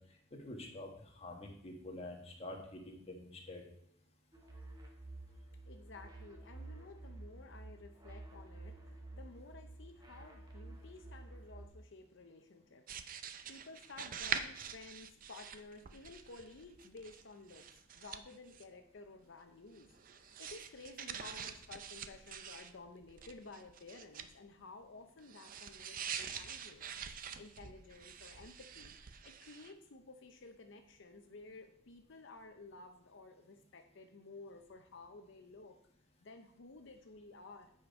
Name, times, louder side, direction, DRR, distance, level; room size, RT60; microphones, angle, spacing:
voice 1, 0.4-0.9 1.1-3.6, left 1 dB, 30° left, 1 dB, 1.4 m, -47 dB
sound 1, 4.3-11.7, right 2 dB, 20° right, 1.2 m, -51 dB
voice 2, 5.6-12.9 13.5-17.7 17.9-19.9 20.2-26.8 27.4-28.9 29.2-35.8 36.2-37.7, left 3 dB, 60° left, 6 dB, 0.6 m, -54 dB
sound 2, 12.9-17.2 17.5-18.6 19.8-22.7 23.0-24.3 25.2-29.7, right 7 dB, 45° right, 0.5 m, -45 dB
8.6 x 5.1 x 5.1 m, 0.72 s
head